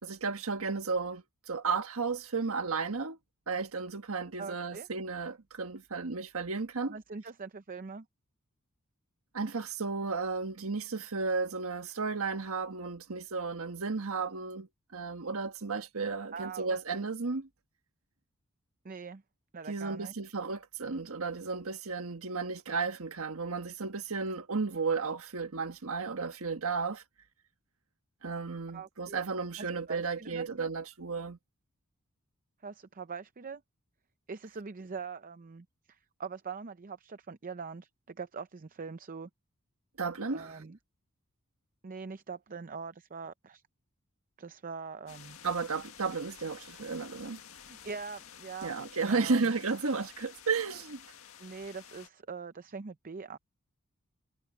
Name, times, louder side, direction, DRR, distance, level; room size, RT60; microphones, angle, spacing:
voice 1, 0.0-3.2 3.5-7.0 9.3-17.5 19.7-27.0 28.2-31.4 40.0-40.6 45.4-47.4 48.6-51.0, right 4 dB, 80° right, 1.4 m, -33 dB
voice 2, 4.4-4.9 6.9-8.1 16.3-17.1 18.8-19.2 19.5-20.1 28.7-29.2 29.6-30.7 32.6-33.6 34.3-39.3 40.3-40.8 41.8-43.6 44.4-45.4 47.6-48.8 49.1-49.4 51.4-53.4, right 5 dB, 40° right, 0.6 m, -43 dB
sound 1, 45.1-52.1, left 8 dB, 80° left, 1.8 m, -52 dB
head